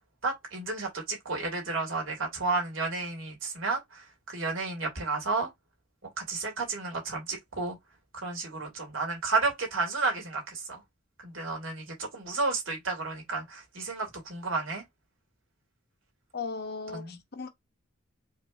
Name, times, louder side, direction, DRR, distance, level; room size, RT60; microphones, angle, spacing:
voice 1, 0.2-5.5 6.2-7.8 8.1-10.8 11.2-14.8 16.9-17.2, right 3 dB, 70° right, 2.5 m, -32 dB
voice 2, 16.3-17.5, left 4 dB, 50° left, 0.9 m, -37 dB
4.9 x 3.2 x 2.5 m
head